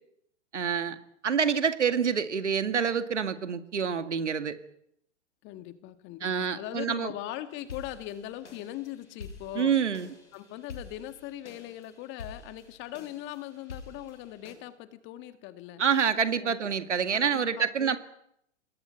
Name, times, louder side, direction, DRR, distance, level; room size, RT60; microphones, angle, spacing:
voice 1, 0.5-1.0 1.2-4.6 6.2-7.1 9.5-10.1 15.8-18.0, right 7 dB, 80° right, 10 dB, 2.1 m, -27 dB
voice 2, 5.4-9.8 10.3-15.8 16.4-16.6 17.1-18.0, left 14 dB, 30° left, 10 dB, 1.9 m, -40 dB
sound 1, 7.5-14.5, left 4 dB, 85° left, 6.7 m, -48 dB
27.5 x 20.5 x 5.8 m, 0.73 s
hypercardioid pair, 115°, 35 cm